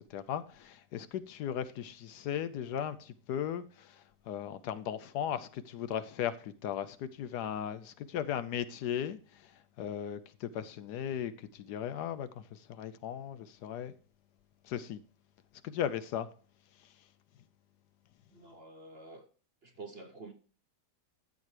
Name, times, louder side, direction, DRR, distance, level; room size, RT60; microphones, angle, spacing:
voice 1, 0.0-9.5 9.8-13.9 14.6-15.0 15.6-16.3, left 9 dB, 75° left, 1.1 m, -37 dB
voice 2, 18.3-19.3 19.6-20.3, right 3 dB, 50° right, 0.8 m, -48 dB
13.0 x 7.4 x 3.2 m
omnidirectional pair, 1.9 m